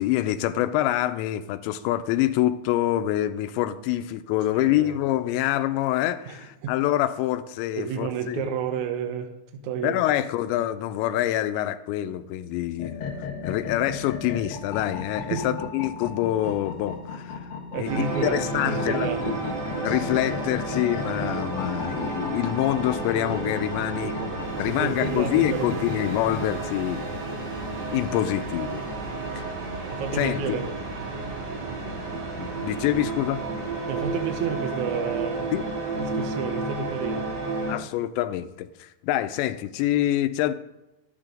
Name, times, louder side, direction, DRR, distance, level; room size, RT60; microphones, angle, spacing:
voice 1, 0.0-8.4 9.8-17.5 17.8-19.5 19.8-24.1 24.6-27.0 27.8-28.8 29.4-29.5 30.2-30.6 32.1-33.4 35.5-35.6 37.7-40.5, left 13 dB, 85° left, 11 dB, 2.9 m, -26 dB
voice 2, 4.5-5.0 6.3-6.7 7.7-9.3 9.6-10.0 15.2-15.6 17.7-19.4 24.0-26.1 29.9-30.7 33.9-35.5 35.9-37.3, right 6 dB, 80° right, 5 dB, 1.7 m, -31 dB
sound 1, 12.8-26.5, left 5 dB, 65° left, 1.4 m, -36 dB
sound 2, 17.8-37.8, right 3 dB, 50° right, 2.3 m, -31 dB
12.0 x 8.9 x 3.8 m, 0.96 s
omnidirectional pair, 5.1 m